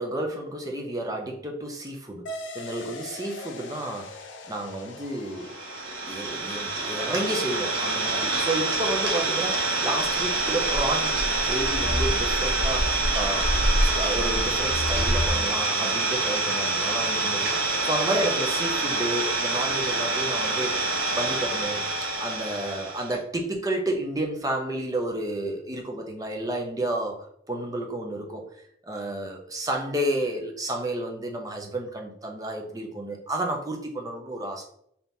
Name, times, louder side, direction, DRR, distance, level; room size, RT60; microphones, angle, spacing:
voice 1, 0.0-5.6 6.0-13.5 13.8-27.2 27.5-34.6, right 1 dB, 20° right, 2 dB, 0.6 m, -31 dB
sound 1, 2.3-11.3, left 2 dB, 90° left, 0.6 m, -44 dB
Idling, 5.4-23.1, right 3 dB, 75° right, 0.8 m, -26 dB
sound 2, 10.0-15.3, equal, 60° left, 1.0 m, -28 dB
3.6 x 2.8 x 3.9 m, 0.69 s
head